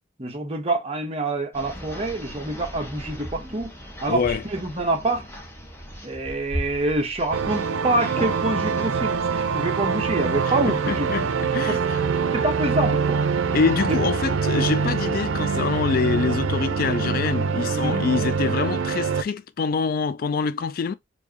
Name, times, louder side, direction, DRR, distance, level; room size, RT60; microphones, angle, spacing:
voice 1, 0.2-3.7 4.0-4.2 4.5-5.2 6.0-11.1 11.7-11.8 12.3-13.2 13.9-14.0 17.8-18.0, right 2 dB, 30° right, 1.0 m, -26 dB
sound 1, 1.5-11.4, equal, 10° left, 1.0 m, -38 dB
voice 2, 4.1-4.4 10.7-11.3 11.5-12.0 13.5-20.9, left 5 dB, 45° left, 0.3 m, -25 dB
sound 2, 7.3-19.2, right 5 dB, 85° right, 0.5 m, -24 dB
4.6 x 2.7 x 2.8 m
head